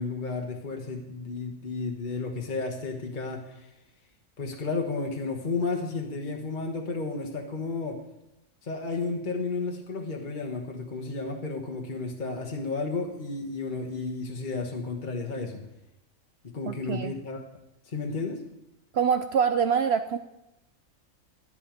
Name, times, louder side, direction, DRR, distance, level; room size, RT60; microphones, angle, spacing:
voice 1, 0.0-3.7 4.4-8.0 8.6-15.6 16.4-17.4 17.8-18.4, left 3 dB, 35° left, 2 dB, 1.4 m, -32 dB
voice 2, 16.7-17.1 18.9-20.2, right 7 dB, 65° right, 9 dB, 0.7 m, -25 dB
12.0 x 10.5 x 5.1 m, 0.89 s
omnidirectional pair, 1.4 m